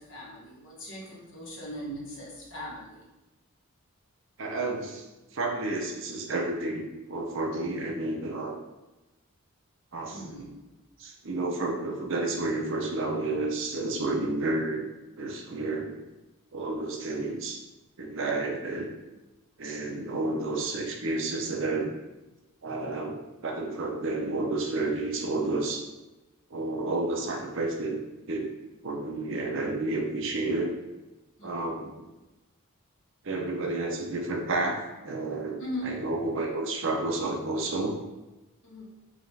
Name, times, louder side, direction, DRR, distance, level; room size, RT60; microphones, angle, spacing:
voice 1, 0.0-3.1 10.1-10.6 31.4-31.7 35.6-36.0 38.6-38.9, equal, 60° left, -4 dB, 1.1 m, -39 dB
voice 2, 4.4-5.1 5.3-8.6 9.9-10.5 11.0-14.8 15.2-16.0 16.5-17.6 18.0-18.9 19.6-21.9 22.6-25.8 26.5-28.0 28.3-28.5 28.8-30.7 31.4-31.9 33.2-35.6 35.8-38.0, right 2 dB, 60° right, 1 dB, 0.6 m, -30 dB
4.9 x 2.4 x 3.2 m, 1.0 s
head